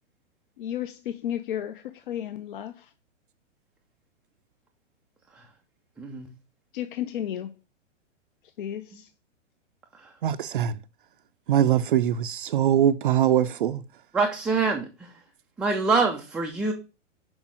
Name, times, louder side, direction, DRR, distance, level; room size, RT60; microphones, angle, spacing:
voice 1, 0.6-2.9 6.7-7.5 8.6-9.1, left 11 dB, 45° left, 0.7 m, -33 dB
voice 2, 10.2-10.7 11.5-13.8, right 10 dB, 45° right, 0.6 m, -22 dB
voice 3, 14.1-14.9 15.6-16.7, right 4 dB, 5° right, 0.4 m, -24 dB
6.3 x 5.2 x 6.2 m
figure-of-eight pair, 110°, 36 cm